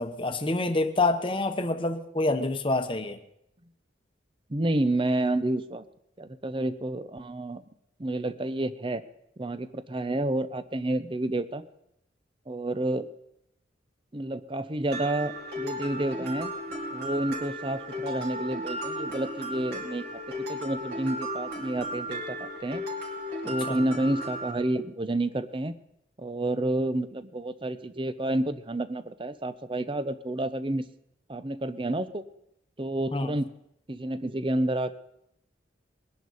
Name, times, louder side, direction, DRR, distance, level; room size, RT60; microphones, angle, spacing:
voice 1, 0.0-3.2 23.7-23.8 33.1-33.3, left 2 dB, 25° left, 8 dB, 1.0 m, -27 dB
voice 2, 4.5-5.8 6.2-7.6 8.0-9.0 9.4-11.7 12.5-13.1 14.1-16.5 16.9-20.2 20.5-22.8 23.5-25.7 26.2-30.8 31.3-32.2 32.8-33.5 33.9-34.9, right 1 dB, 25° right, 13 dB, 0.6 m, -29 dB
Mallet percussion, 14.9-24.5, equal, 55° right, 4.4 m, -35 dB
21.5 x 11.0 x 4.1 m, 0.79 s
head